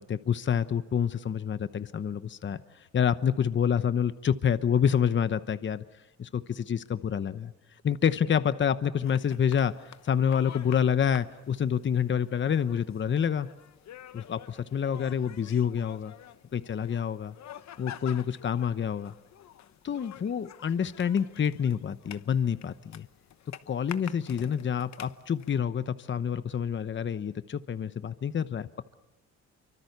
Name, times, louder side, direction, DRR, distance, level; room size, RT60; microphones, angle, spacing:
voice 1, 0.1-2.6 2.9-5.8 6.2-7.5 7.8-13.5 14.1-16.1 16.5-17.3 17.8-19.1 19.8-23.1 23.7-28.7, left 8 dB, 40° left, 12 dB, 0.9 m, -28 dB
sound 1, 9.0-25.6, left 11 dB, 65° left, 1.0 m, -49 dB
26.5 x 24.5 x 6.8 m, 0.97 s
cardioid pair, 90°, 30 cm